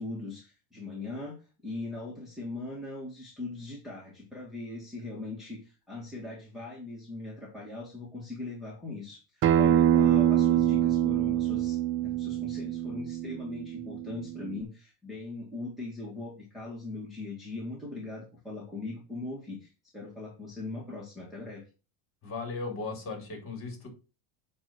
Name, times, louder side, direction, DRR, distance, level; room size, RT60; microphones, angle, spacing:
voice 1, 0.0-21.6, left 2 dB, ahead, -6 dB, 2.1 m, -40 dB
Acoustic guitar, 9.4-14.6, right 11 dB, 30° right, 0.5 m, -25 dB
voice 2, 22.2-23.9, left 3 dB, 30° left, 2 dB, 3.7 m, -37 dB
8.6 x 3.2 x 6.2 m, 0.33 s
supercardioid pair, 135°, 43 cm